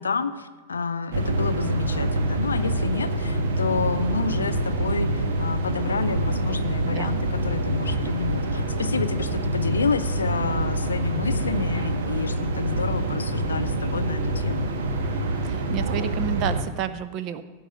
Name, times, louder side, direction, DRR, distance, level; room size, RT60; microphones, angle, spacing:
voice 1, 0.0-14.7, left 5 dB, 75° left, 11 dB, 0.6 m, -29 dB
sound 1, 1.1-16.6, right 1 dB, 55° right, 1.2 m, -26 dB
voice 2, 6.8-7.2 15.4-17.4, right 9 dB, 40° right, 12 dB, 0.7 m, -30 dB
16.0 x 5.5 x 7.5 m, 1.3 s
figure-of-eight pair, 90°, 0 cm